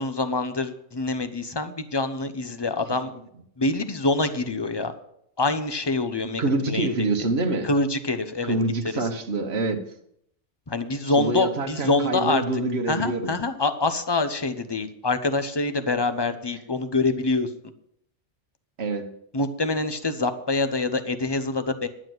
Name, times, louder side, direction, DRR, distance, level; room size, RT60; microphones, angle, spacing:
voice 1, 0.0-3.1 3.6-4.9 5.4-7.1 7.6-8.6 8.9-9.1 10.7-12.4 12.9-17.5 19.3-21.9, left 3 dB, 25° left, 9 dB, 0.8 m, -25 dB
voice 2, 6.4-7.7 8.4-9.8 11.2-13.3 18.8-19.1, right 2 dB, 60° right, 5 dB, 1.5 m, -26 dB
11.0 x 7.4 x 7.8 m, 0.71 s
omnidirectional pair, 1.2 m